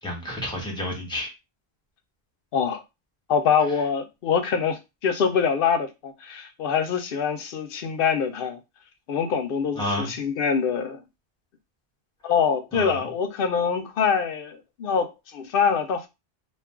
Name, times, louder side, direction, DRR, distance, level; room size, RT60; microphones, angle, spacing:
voice 1, 0.0-1.3 9.7-10.1 12.7-13.0, left 1 dB, 5° left, 1.1 m, -30 dB
voice 2, 2.5-2.8 3.3-8.6 9.1-11.0 12.2-16.1, left 6 dB, 65° left, 0.7 m, -24 dB
2.4 x 2.3 x 3.6 m
omnidirectional pair, 1.1 m